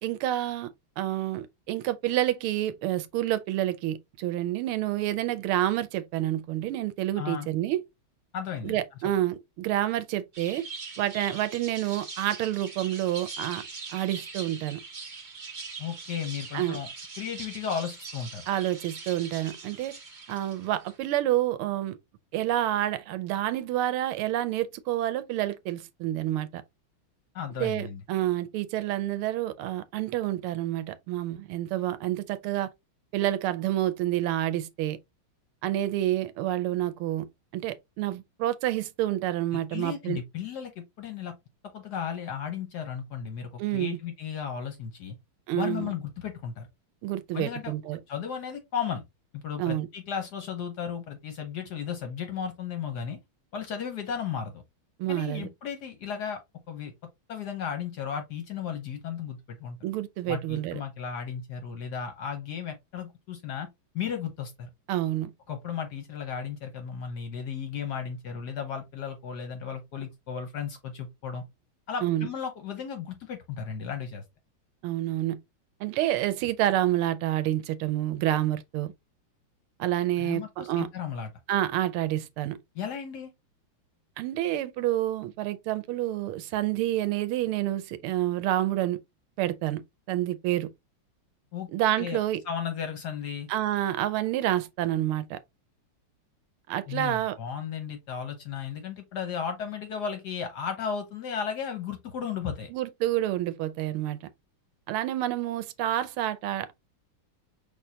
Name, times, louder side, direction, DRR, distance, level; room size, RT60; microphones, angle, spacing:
voice 1, 0.0-7.8 8.6-10.6 11.0-13.6 13.9-14.8 16.5-16.8 18.5-19.9 20.3-22.0 22.3-26.6 27.6-32.7 33.1-35.0 35.6-37.3 37.5-40.2 43.6-44.0 45.5-45.9 47.0-48.0 49.6-49.9 55.0-55.5 59.8-60.8 64.9-65.3 72.0-72.3 74.8-75.4 75.8-78.9 79.8-80.9 81.5-82.6 84.2-89.0 89.4-89.8 90.1-90.7 91.7-92.4 93.5-95.4 96.7-97.4 102.7-104.2 104.9-106.7, right 13 dB, 80° right, 1.5 m, -28 dB
voice 2, 7.2-7.5 8.3-8.8 15.8-16.9 17.2-18.4 27.3-28.0 39.5-41.3 41.7-45.1 45.5-46.7 47.3-47.7 48.1-49.0 49.3-53.2 53.5-54.6 55.1-56.4 56.7-56.9 57.3-59.8 60.3-63.7 63.9-64.7 65.5-71.4 71.9-74.2 80.2-81.3 82.7-83.3 91.5-91.7 92.0-92.2 92.5-93.5 96.9-102.7, left 7 dB, 60° left, 1.1 m, -34 dB
sound 1, 10.3-21.0, right 4 dB, 65° right, 0.4 m, -42 dB
5.3 x 3.4 x 2.7 m
omnidirectional pair, 2.4 m